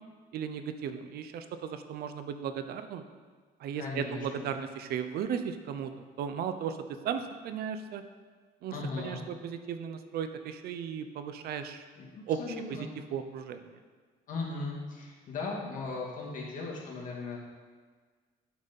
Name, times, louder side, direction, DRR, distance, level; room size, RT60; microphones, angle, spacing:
voice 1, 0.3-3.0 3.6-5.9 6.2-8.0 8.6-11.8 12.3-13.8, right 7 dB, 65° right, 9 dB, 0.6 m, -36 dB
voice 2, 3.8-4.4 8.7-9.2 12.1-12.9 14.3-17.4, left 3 dB, 50° left, -3 dB, 2.1 m, -37 dB
8.6 x 4.2 x 5.3 m, 1.5 s
cardioid pair, 110°, 17 cm